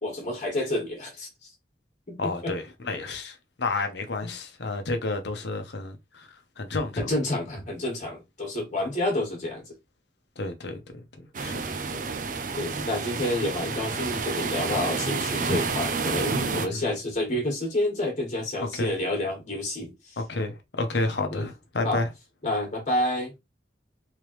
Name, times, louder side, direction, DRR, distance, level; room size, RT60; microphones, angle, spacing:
voice 1, 0.0-1.3 2.1-2.5 4.2-4.3 6.9-9.6 11.9-12.0 12.5-20.2 21.3-21.5 21.8-22.0 22.4-23.3, left 1 dB, 40° left, 1.6 m, -29 dB
voice 2, 2.2-6.3 6.6-6.9 10.4-11.6 15.6-15.7 16.6-16.8 18.6-18.9 20.2-22.1, left 2 dB, 70° left, 0.9 m, -31 dB
sound 1, 11.3-16.7, right 4 dB, 45° right, 0.6 m, -29 dB
3.7 x 3.4 x 3.1 m
head